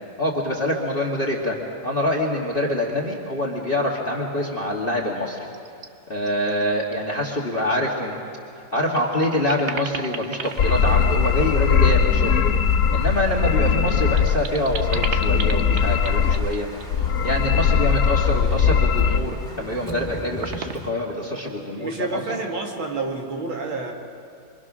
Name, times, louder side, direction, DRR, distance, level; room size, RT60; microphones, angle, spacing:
voice 1, 0.2-1.6 1.8-5.4 6.1-8.2 8.7-12.3 12.9-22.2, left 1 dB, 30° left, -3 dB, 2.0 m, -25 dB
sound 1, 5.5-5.9 6.3-6.6 6.9-7.0 8.3-8.4 8.8-11.8 13.4-16.9 18.8-19.4 19.7-20.1 20.4-21.5, right 6 dB, 50° right, 0.8 m, -35 dB
sound 2, 10.4-20.9, equal, ahead, 2.2 m, -41 dB
sound 3, 10.6-14.4 14.7-16.6 16.9-19.2, left 6 dB, 60° left, 1.1 m, -20 dB
voice 2, 21.8-23.9, right 3 dB, 75° right, 0 dB, 3.3 m, -29 dB
26.0 x 25.0 x 6.2 m, 2.4 s
omnidirectional pair, 2.2 m